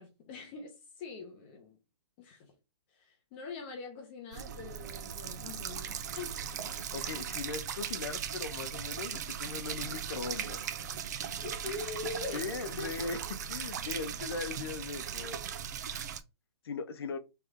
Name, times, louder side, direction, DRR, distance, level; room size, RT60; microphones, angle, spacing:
voice 1, 0.0-1.8 2.2-2.5 2.9-6.8 11.4-13.1, left 4 dB, 25° left, 0.8 m, -43 dB
sound 1, 4.3-16.2, right 8 dB, 40° right, 0.4 m, -38 dB
voice 2, 6.9-10.6 12.3-13.2 13.5-15.4 15.9-16.1 16.6-17.2, left 4 dB, 60° left, 0.8 m, -39 dB
3.4 x 3.4 x 3.6 m
hypercardioid pair, 165°, 15 cm